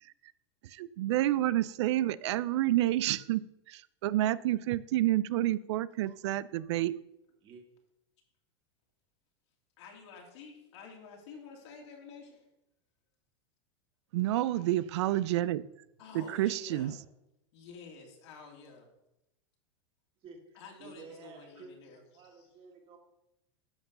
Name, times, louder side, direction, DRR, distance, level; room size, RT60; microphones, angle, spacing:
voice 1, 0.6-7.0 14.1-15.6 16.1-16.9, right 14 dB, 75° right, 18 dB, 0.4 m, -29 dB
voice 2, 9.8-12.4 14.5-14.7 16.0-17.0 17.5-18.9 20.5-22.5, left 4 dB, 70° left, 0 dB, 2.7 m, -50 dB
voice 3, 20.2-23.0, right 4 dB, 35° right, 1 dB, 2.1 m, -52 dB
10.5 x 4.4 x 6.7 m, 0.87 s
supercardioid pair, 130°, 15 cm